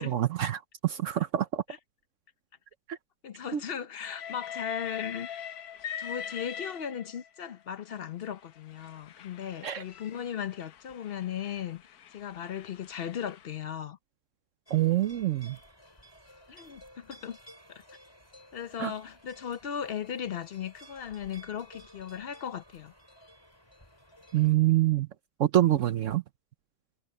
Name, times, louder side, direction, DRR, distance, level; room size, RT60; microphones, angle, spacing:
voice 1, 0.0-1.6 2.9-3.0 3.5-3.6 9.6-9.8 14.7-15.6 18.8-18.9 24.3-25.1 25.4-26.2, right 13 dB, 65° right, 1.0 m, -26 dB
voice 2, 3.2-5.3 6.0-14.0 16.5-17.4 17.7-17.8 18.5-22.9, left 8 dB, 50° left, 0.8 m, -37 dB
Train, 4.0-7.4 8.3-13.5, left 8 dB, 85° left, 1.4 m, -42 dB
sound 1, 14.7-24.5, equal, 15° left, 3.9 m, -55 dB
omnidirectional pair, 1.6 m